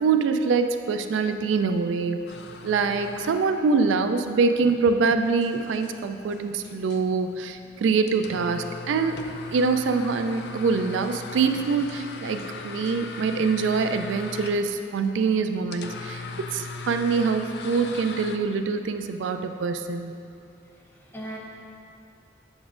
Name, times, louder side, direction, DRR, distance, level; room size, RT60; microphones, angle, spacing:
voice 1, 0.0-2.2 2.6-9.2 9.5-16.2 16.5-20.1, right 4 dB, 85° right, 8 dB, 0.3 m, -24 dB
voice 2, 1.6-2.0 2.8-3.4 3.8-3.9 4.8-4.9 6.3-6.7 7.0-7.1 7.7-8.1 20.9-21.4, right 1 dB, 10° left, -4 dB, 0.7 m, -45 dB
sound 1, 2.3-18.4, left 4 dB, 60° left, 0.3 m, -40 dB
8.0 x 6.1 x 2.5 m, 2.7 s
head